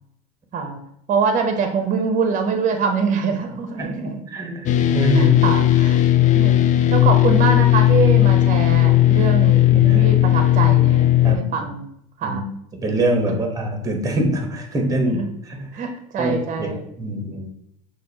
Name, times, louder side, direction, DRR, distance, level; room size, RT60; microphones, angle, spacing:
voice 1, 1.1-4.2 5.1-6.0 6.3-6.6 6.9-11.9 12.2-12.4 13.3-13.4 15.1-15.3 15.7-16.8, right 5 dB, 40° right, 6 dB, 0.8 m, -24 dB
voice 2, 3.8-5.3 9.7-10.3 10.6-10.7 11.2-11.5 12.2-12.4 12.7-15.1 15.4-15.8 16.2-16.7 17.0-17.5, right 1 dB, 15° right, 3 dB, 1.1 m, -24 dB
sound 1, 4.7-11.4, left 13 dB, 40° left, 0.4 m, -15 dB
6.1 x 2.5 x 2.8 m, 0.73 s
supercardioid pair, 90°, 20 cm